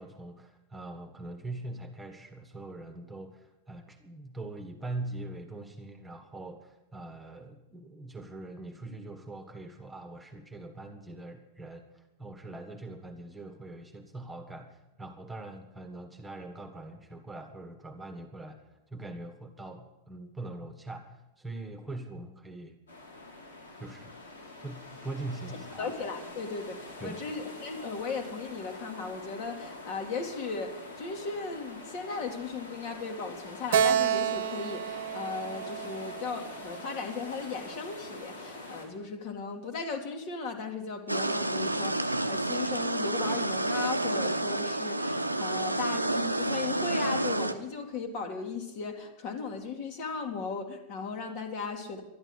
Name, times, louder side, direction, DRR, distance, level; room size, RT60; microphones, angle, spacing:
voice 1, 0.0-18.6 18.9-22.8 23.8-24.1 24.6-25.9 27.0-27.2, right 2 dB, 10° right, 5 dB, 1.6 m, -42 dB
sound 1, 22.9-38.9, left 2 dB, 70° left, 3.3 m, -45 dB
voice 2, 25.8-52.0, left 4 dB, 45° left, 4 dB, 2.1 m, -37 dB
Keyboard (musical), 33.7-37.2, right 9 dB, 55° right, 1.0 m, -30 dB
sound 2, 41.1-47.5, right 1 dB, 85° right, 0.7 m, -29 dB
12.0 x 11.0 x 8.0 m, 0.93 s
figure-of-eight pair, 90°, 0 cm